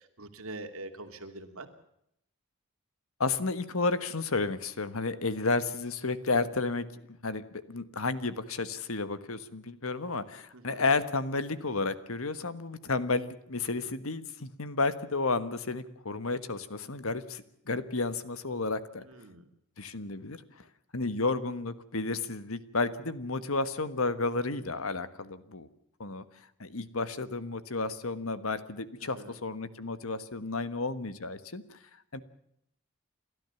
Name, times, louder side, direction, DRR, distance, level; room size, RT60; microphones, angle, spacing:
voice 1, 0.2-1.7 10.5-10.8 19.1-19.4 29.2-29.3, right 2 dB, 70° right, 6 dB, 2.7 m, -43 dB
voice 2, 3.2-6.9 7.2-19.0 19.8-20.7 20.9-25.7 26.0-26.2 26.6-31.8 32.1-32.2, left 3 dB, 70° left, 13 dB, 1.5 m, -32 dB
29.5 x 13.0 x 7.1 m, 0.76 s
head